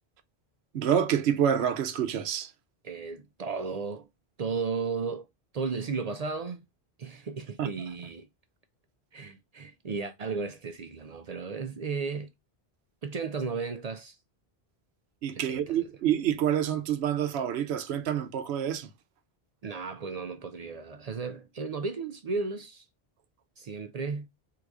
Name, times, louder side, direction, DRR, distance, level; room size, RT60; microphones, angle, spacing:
voice 1, 0.7-2.5 7.6-7.7 15.2-18.9, right 9 dB, 85° right, 0.9 m, -27 dB
voice 2, 2.8-4.1 4.4-5.2 5.5-6.6 7.0-8.3 9.1-12.3 13.0-14.2 15.5-15.6 19.6-22.8 23.6-24.3, right 4 dB, 55° right, 0.5 m, -34 dB
3.8 x 2.4 x 4.6 m
omnidirectional pair, 1.0 m